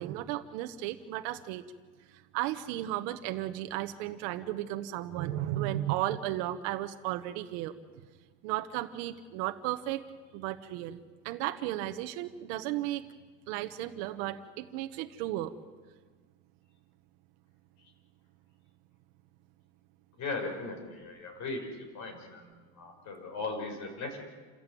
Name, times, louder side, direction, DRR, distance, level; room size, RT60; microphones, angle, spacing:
voice 1, 0.0-1.6 2.1-7.7 8.4-10.0 10.3-11.0 11.2-13.0 13.5-15.5, right 14 dB, 75° right, 7 dB, 1.2 m, -34 dB
voice 2, 20.2-21.7 21.9-24.2, left 3 dB, 50° left, 4 dB, 6.1 m, -38 dB
28.0 x 14.0 x 9.2 m, 1.4 s
cardioid pair, 135°, 37 cm